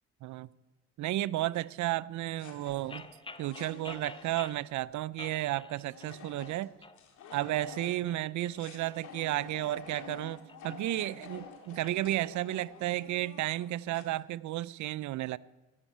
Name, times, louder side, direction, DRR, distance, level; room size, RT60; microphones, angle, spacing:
voice 1, 1.0-3.1 3.4-6.7 7.3-15.4, right 15 dB, 70° right, 19 dB, 0.5 m, -33 dB
sound 1, 2.4-4.9 5.8-8.1 8.6-14.1, left 6 dB, 75° left, 2.1 m, -49 dB
sound 2, 2.9-4.7 5.2-6.2 6.4-7.0 7.5-9.3 9.8-12.0, left 3 dB, 15° left, 0.7 m, -49 dB
14.5 x 6.3 x 9.1 m, 1.1 s
cardioid pair, 90°, 30 cm